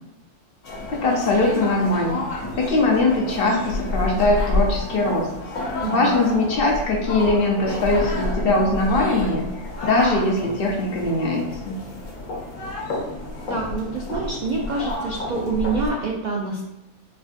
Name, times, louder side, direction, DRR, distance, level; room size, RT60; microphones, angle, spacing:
sound 1, 0.6-15.9, left 2 dB, 85° left, 1.2 m, -30 dB
voice 1, 0.9-2.2 2.5-5.3 5.9-9.5 9.8-11.8, left 2 dB, 55° left, -1 dB, 0.8 m, -21 dB
voice 2, 13.5-16.6, right 3 dB, 85° right, -1 dB, 0.4 m, -26 dB
4.4 x 2.5 x 2.4 m, 0.91 s
omnidirectional pair, 1.3 m